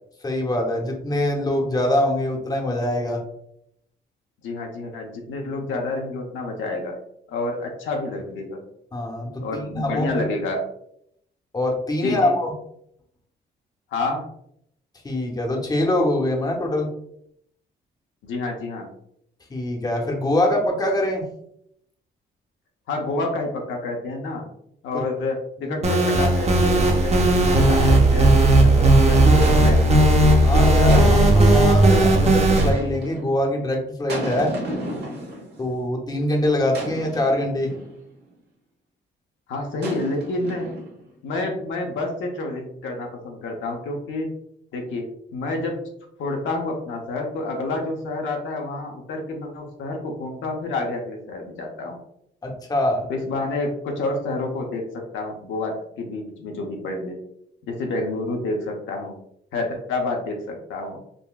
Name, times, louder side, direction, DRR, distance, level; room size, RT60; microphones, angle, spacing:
voice 1, 0.2-3.2 8.9-10.3 11.5-12.5 15.0-16.9 19.5-21.3 25.6-25.8 30.3-34.5 35.6-37.7 52.4-53.1, left 1 dB, 20° left, 0 dB, 0.7 m, -24 dB
voice 2, 4.4-6.9 7.3-8.6 9.4-10.6 12.0-12.3 13.9-14.2 18.2-18.9 22.9-24.5 24.8-30.0 39.5-40.7 41.2-44.3 44.7-45.8 46.2-52.0 53.1-57.2 57.6-59.2 59.5-61.0, left 2 dB, 75° left, 1 dB, 0.7 m, -29 dB
sound 1, 25.8-32.7, right 1 dB, 35° right, 0.6 m, -16 dB
sound 2, 29.4-30.2 30.9-31.7 32.6-33.3 34.1-35.7 36.7-38.0 39.8-41.1, right 1 dB, 55° right, 1.1 m, -34 dB
3.8 x 2.1 x 2.3 m, 0.73 s
cardioid pair, 90°, 20 cm